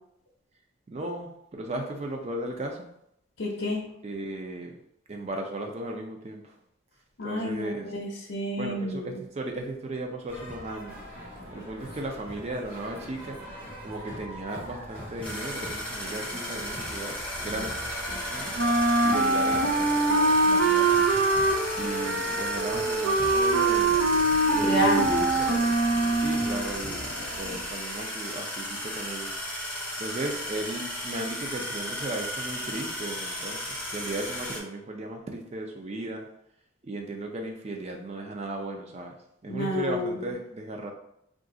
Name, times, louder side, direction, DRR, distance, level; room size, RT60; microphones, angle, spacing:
voice 1, 0.9-2.9 4.0-4.7 5.1-6.5 7.2-7.9 8.6-11.0 11.5-13.4 13.7-17.8 18.3-18.5 19.0-21.1 21.8-24.0 24.5-25.6 26.2-29.3 30.0-36.3 36.8-39.1 39.4-40.9, right 2 dB, 30° right, 2 dB, 0.4 m, -36 dB
voice 2, 3.4-3.8 7.2-9.2 17.5-17.7 24.7-25.5 39.5-40.3, left 1 dB, 60° left, -4 dB, 0.6 m, -29 dB
sound 1, 10.3-27.7, equal, 50° right, 1.1 m, -41 dB
sound 2, 15.2-34.6, left 1 dB, 5° left, 0.7 m, -35 dB
Wind instrument woodwind instrument, 18.6-26.7, right 2 dB, 85° right, 0.5 m, -23 dB
2.5 x 2.4 x 3.7 m, 0.76 s
head